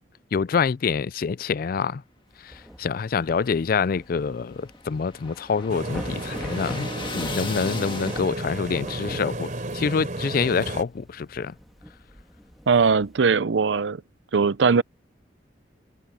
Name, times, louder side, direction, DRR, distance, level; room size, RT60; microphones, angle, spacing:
voice 1, 0.3-2.0 2.4-11.5, left 5 dB, 50° left, 0.4 m, -26 dB
Thunder / Rain, 2.3-13.2, equal, ahead, 2.1 m, -44 dB
sound 1, 3.2-8.7, left 4 dB, 30° left, 1.7 m, -38 dB
sound 2, 5.7-10.8, right 1 dB, 45° right, 3.4 m, -32 dB
voice 2, 12.7-14.0 14.3-14.8, right 5 dB, 75° right, 0.6 m, -20 dB
head